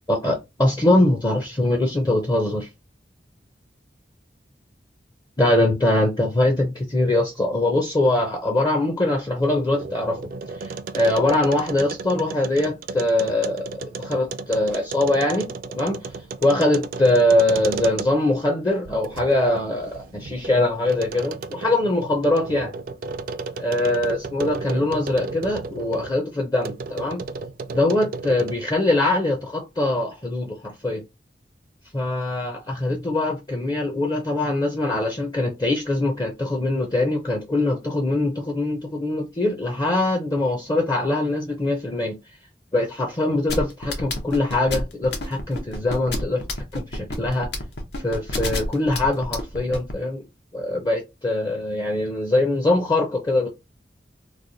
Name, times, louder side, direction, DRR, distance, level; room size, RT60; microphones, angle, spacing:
voice 1, 0.1-2.7 5.4-10.2 10.6-15.5 15.7-16.0 16.4-22.7 23.6-27.2 27.7-31.0 31.9-42.2 42.7-46.4 46.7-47.5 48.0-50.2 50.5-53.5, left 1 dB, 25° left, 0.5 m, -22 dB
sound 1, 9.4-18.4 18.8-26.1 26.6-28.7, right 4 dB, 50° right, 0.3 m, -34 dB
sound 2, 43.5-49.9, left 2 dB, 70° left, 0.9 m, -28 dB
3.1 x 2.1 x 3.8 m
head